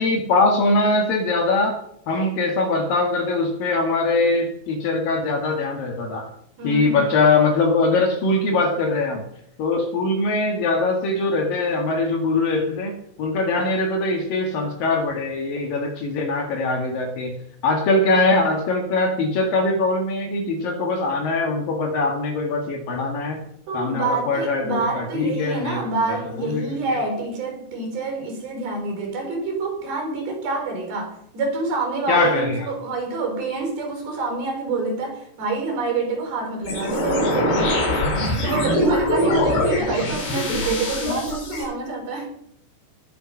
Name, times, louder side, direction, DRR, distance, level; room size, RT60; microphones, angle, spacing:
voice 1, 0.0-1.8 2.1-6.3 6.6-9.3 9.6-23.4 23.7-25.8 26.1-27.0 32.1-32.7 37.9-38.3 39.3-39.7, left 3 dB, 65° left, 3 dB, 3.4 m, -22 dB
voice 2, 6.6-7.1 23.7-37.7 38.4-42.3, right 3 dB, 65° right, 2 dB, 5.8 m, -27 dB
sound 1, 36.6-41.6, left 1 dB, 85° left, 6.0 m, -23 dB
20.0 x 7.0 x 5.6 m, 0.72 s
omnidirectional pair, 4.6 m